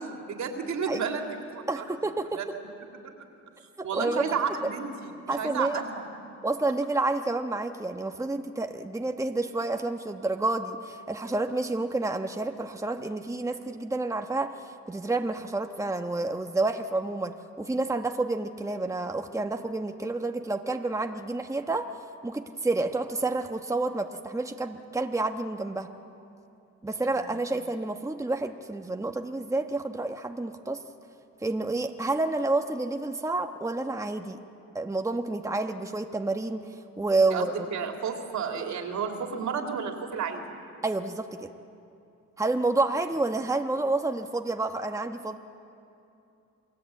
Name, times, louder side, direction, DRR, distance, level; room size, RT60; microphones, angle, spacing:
voice 1, 0.0-1.8 2.3-2.5 3.8-6.0 27.0-27.3 37.3-40.4, right 6 dB, 70° right, 3 dB, 3.3 m, -32 dB
voice 2, 1.7-2.4 3.8-4.3 5.3-5.8 6.4-14.5 14.9-21.9 22.2-25.9 26.8-30.8 31.4-34.4 34.7-36.7 37.0-37.5 40.8-41.5 42.4-45.4, right 2 dB, 10° right, 5 dB, 1.2 m, -29 dB
28.0 x 20.5 x 8.6 m, 2.7 s
cardioid pair, 90°, 30 cm